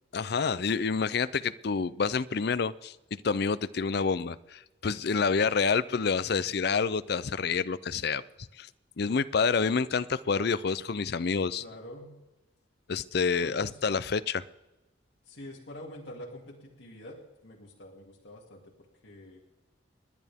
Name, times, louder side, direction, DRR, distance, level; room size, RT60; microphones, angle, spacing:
voice 1, 0.1-8.2 8.6-8.7 9.0-11.6 12.9-14.4, left 5 dB, 55° left, 17 dB, 0.5 m, -28 dB
voice 2, 11.6-12.1 13.4-13.8 15.2-18.7 19.0-19.4, left 1 dB, 75° left, -4 dB, 2.5 m, -46 dB
29.5 x 10.5 x 3.6 m, 1.0 s
head